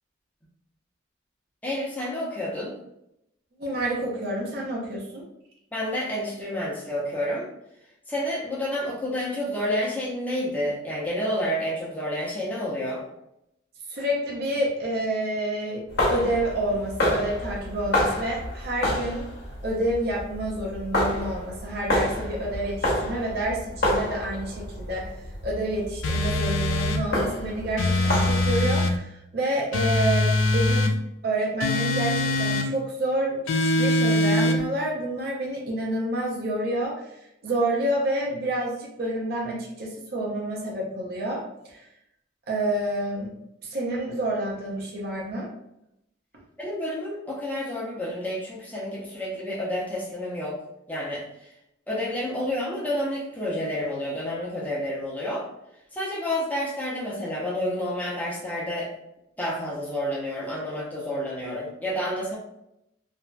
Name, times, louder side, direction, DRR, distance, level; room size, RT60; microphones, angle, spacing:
voice 1, 1.6-2.8 5.7-7.5 8.1-13.0 46.6-50.6 50.9-51.5 51.9-55.5 55.9-58.9 59.4-62.4, left 1 dB, 10° left, -5 dB, 0.6 m, -29 dB
voice 2, 3.6-5.2 13.9-19.3 19.6-25.1 25.4-30.9 31.2-37.1 37.4-41.9 42.5-43.3 43.6-45.5, right 1 dB, 50° right, -2 dB, 0.6 m, -28 dB
sound 1, 15.9-28.7, left 1 dB, 50° left, 0.8 m, -29 dB
sound 2, 26.0-27.0 27.8-29.0 29.7-30.9 31.6-32.7 33.5-34.6, left 1 dB, 85° left, 0.4 m, -23 dB
2.9 x 2.5 x 2.2 m, 0.82 s
head